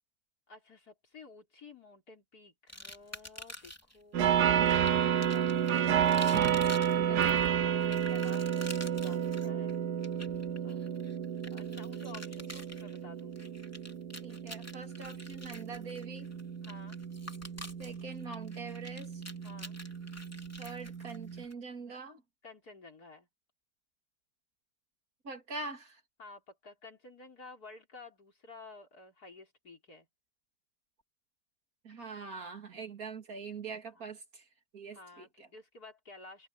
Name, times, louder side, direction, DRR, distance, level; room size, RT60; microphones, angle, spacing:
voice 1, 0.5-6.1 7.1-9.8 10.6-11.0 11.5-13.6 16.6-17.0 19.4-19.8 22.4-23.3 26.2-30.1 33.9-34.1 34.9-36.5, left 3 dB, 70° left, 5.0 m, -53 dB
sound 1, 2.7-4.0 4.7-21.5, left 1 dB, 10° left, 3.4 m, -48 dB
sound 2, 4.1-21.4, right 9 dB, 90° right, 1.5 m, -31 dB
voice 2, 7.0-7.3 14.2-16.3 17.8-19.2 20.6-22.2 25.2-26.0 31.8-34.5 34.7-35.3, right 4 dB, 65° right, 3.1 m, -43 dB
omnidirectional pair, 1.7 m